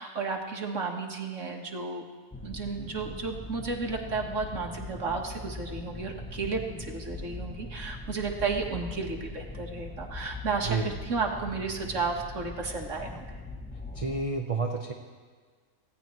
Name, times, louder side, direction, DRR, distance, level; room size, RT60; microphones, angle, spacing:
voice 1, 0.0-2.0 2.4-13.3, right 4 dB, 55° right, 2 dB, 1.7 m, -33 dB
sound 1, 2.3-14.2, left 2 dB, 10° left, 0.5 m, -41 dB
voice 2, 13.9-14.9, right 3 dB, 30° right, 2 dB, 0.7 m, -29 dB
24.5 x 16.5 x 3.1 m, 1.5 s
omnidirectional pair, 1.6 m